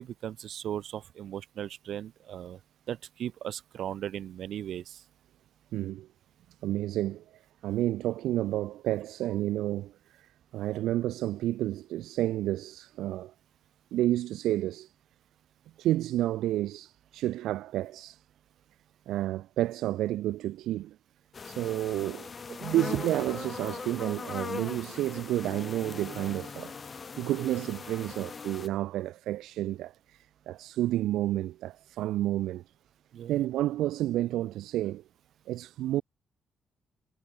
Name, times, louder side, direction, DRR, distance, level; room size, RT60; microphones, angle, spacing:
voice 1, 0.0-2.6 2.9-5.0 33.1-33.4, right 10 dB, 70° right, 1.2 m, -37 dB
voice 2, 5.7-6.1 6.6-7.2 7.6-13.3 13.9-14.9 15.8-18.2 19.1-21.0 21.4-26.7 27.2-32.6 33.3-35.0 35.5-36.0, right 14 dB, 85° right, 0.5 m, -30 dB
sound 1, 21.3-28.7, left 5 dB, 35° left, 6.0 m, -40 dB
cardioid pair, 90°, 0 cm